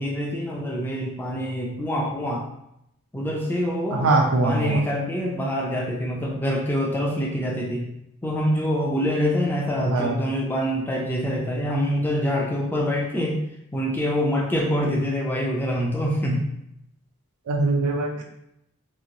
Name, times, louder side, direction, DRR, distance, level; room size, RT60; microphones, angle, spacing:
voice 1, 0.0-2.5 3.1-4.1 4.4-7.9 8.2-13.4 13.7-16.5, equal, 10° left, -2 dB, 0.4 m, -25 dB
voice 2, 3.9-4.8 9.8-10.2 17.5-18.2, right 2 dB, 85° right, 1 dB, 0.4 m, -22 dB
3.0 x 2.5 x 2.6 m, 0.80 s
head